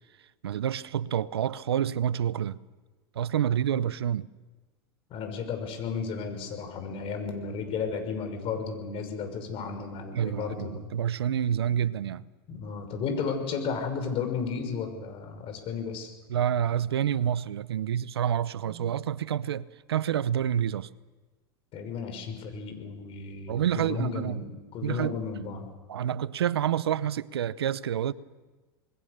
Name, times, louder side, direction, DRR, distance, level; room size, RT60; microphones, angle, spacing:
voice 1, 0.4-2.6 3.1-4.3 10.1-12.2 16.3-20.9 23.5-24.4 24.8-25.2 25.9-28.1, right 9 dB, 90° right, 0.7 m, -28 dB
voice 2, 5.1-10.9 12.5-16.1 18.7-19.0 21.7-25.7, left 5 dB, 45° left, 5.9 m, -34 dB
27.5 x 21.0 x 6.8 m
hypercardioid pair, 95°, 13 cm